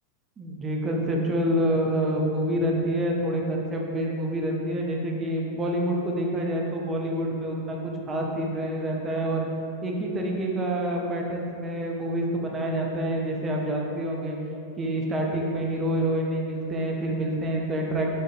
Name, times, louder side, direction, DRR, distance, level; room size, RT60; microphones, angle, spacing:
voice 1, 0.4-9.5 9.8-14.4 14.8-18.1, right 1 dB, 20° right, -1 dB, 0.3 m, -27 dB
2.4 x 2.1 x 2.9 m, 2.6 s
figure-of-eight pair, 90°, 0 cm